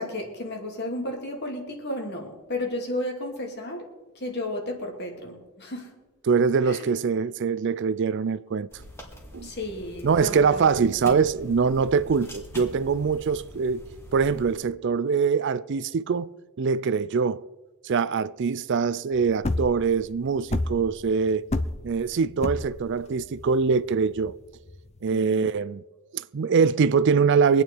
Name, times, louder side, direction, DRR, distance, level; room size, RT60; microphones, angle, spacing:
voice 1, 0.0-3.9 4.1-5.9 6.6-6.8 9.4-10.7 25.1-25.5, left 1 dB, 50° left, 2.6 m, -33 dB
voice 2, 6.3-8.7 9.3-9.5 10.0-13.8 14.1-16.3 16.6-17.4 17.8-21.5 21.8-24.3 25.0-25.8 26.1-27.6, right 5 dB, 55° right, 0.4 m, -23 dB
sound 1, 8.7-14.6, equal, 10° left, 2.0 m, -44 dB
sound 2, 19.2-25.1, left 2 dB, 30° left, 0.6 m, -30 dB
23.5 x 9.1 x 4.6 m
head